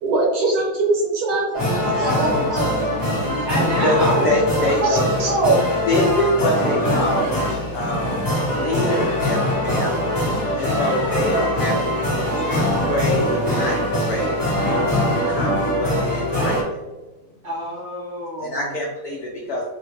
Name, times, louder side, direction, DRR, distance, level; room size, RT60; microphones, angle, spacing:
voice 1, 0.0-2.8 4.8-5.6, right 2 dB, 85° right, -2 dB, 1.8 m, -22 dB
sound 1, 1.5-16.6, left 1 dB, 30° left, 0.4 m, -22 dB
voice 2, 3.4-4.3 17.4-18.7, equal, 60° right, -5 dB, 0.7 m, -27 dB
voice 3, 4.2-5.2 5.9-8.1 8.6-9.9 10.6-14.4 15.2-16.8 18.4-19.7, left 1 dB, 80° left, -2 dB, 0.8 m, -25 dB
3.7 x 2.1 x 3.1 m, 1.1 s
omnidirectional pair, 2.3 m